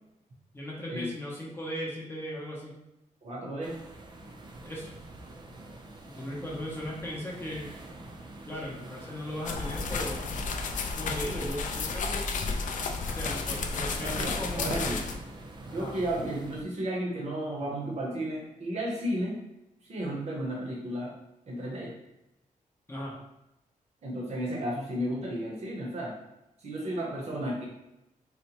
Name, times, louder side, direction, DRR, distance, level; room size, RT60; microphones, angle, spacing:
voice 1, 0.5-2.8 4.6-5.0 6.0-7.7 8.5-10.2 10.9-12.3 13.0-15.0 15.7-15.9 22.9-23.1, equal, 15° left, -5 dB, 0.6 m, -37 dB
voice 2, 3.2-3.8 14.0-15.0 15.7-19.4 19.8-21.1 21.5-21.9 24.0-26.1 26.6-27.7, right 1 dB, 55° right, -3 dB, 0.8 m, -33 dB
sound 1, 3.6-16.6, right 2 dB, 35° right, 0.4 m, -46 dB
sound 2, 9.4-15.2, left 4 dB, 70° left, 0.4 m, -32 dB
4.1 x 2.1 x 2.8 m, 0.90 s
wide cardioid pair, 160°, 14 cm